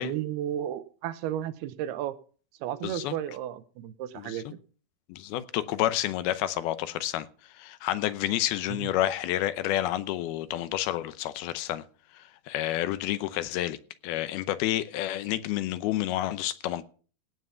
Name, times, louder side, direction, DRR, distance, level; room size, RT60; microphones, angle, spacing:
voice 1, 0.0-2.1 2.6-4.6 8.7-8.9, right 11 dB, 90° right, 2.8 m, -33 dB
voice 2, 2.8-3.1 4.2-4.4 5.1-7.3 7.6-11.8 12.1-13.8 14.0-16.8, left 13 dB, 80° left, 2.6 m, -29 dB
17.0 x 5.8 x 6.9 m
omnidirectional pair, 4.5 m